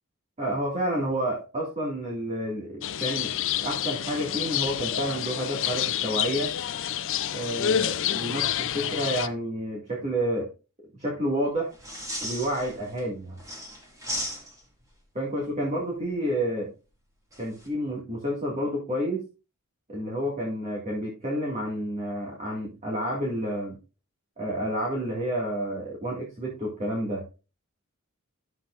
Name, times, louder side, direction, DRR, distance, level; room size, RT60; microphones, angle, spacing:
voice 1, 0.4-3.4 3.6-6.5 7.3-10.5 11.0-11.7 12.2-13.4 15.1-16.7 17.4-19.3 19.9-23.8 24.4-27.2, equal, 30° right, -2 dB, 2.1 m, -30 dB
sound 1, 2.8-9.3, left 10 dB, 60° left, 0.5 m, -28 dB
sound 2, 11.7-13.0 13.4-14.8 17.3-17.7, equal, 15° right, 2.3 m, -36 dB
11.0 x 7.4 x 2.5 m, 0.31 s
head